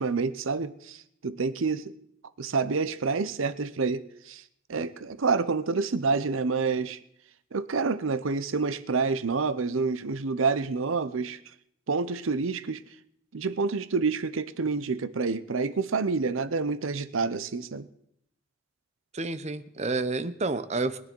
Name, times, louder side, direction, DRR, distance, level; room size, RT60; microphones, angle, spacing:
voice 1, 0.0-1.9 2.4-4.4 4.7-7.0 7.5-11.4 11.9-12.8 13.3-17.9, right 4 dB, 80° right, 14 dB, 0.7 m, -28 dB
voice 2, 19.1-21.0, right 3 dB, 35° right, 12 dB, 0.7 m, -29 dB
21.5 x 9.6 x 4.6 m, 0.73 s
head